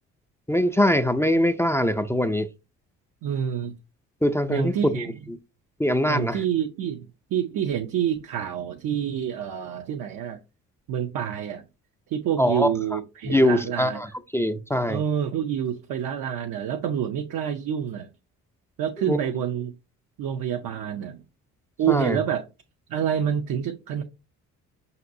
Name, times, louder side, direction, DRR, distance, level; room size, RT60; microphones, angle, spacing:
voice 1, 0.5-2.5 4.2-5.0 5.8-6.4 12.4-13.0 13.2-14.1 14.3-15.0 19.1-19.2 21.9-22.2, left 1 dB, 5° left, 0.4 m, -22 dB
voice 2, 3.2-3.7 4.5-5.1 6.1-10.4 10.9-11.6 12.1-14.0 14.9-18.1 18.8-19.7 20.2-21.2 21.8-22.4 22.9-24.0, right 9 dB, 60° right, 0.6 m, -27 dB
5.7 x 2.8 x 2.6 m
supercardioid pair, 55°, 39 cm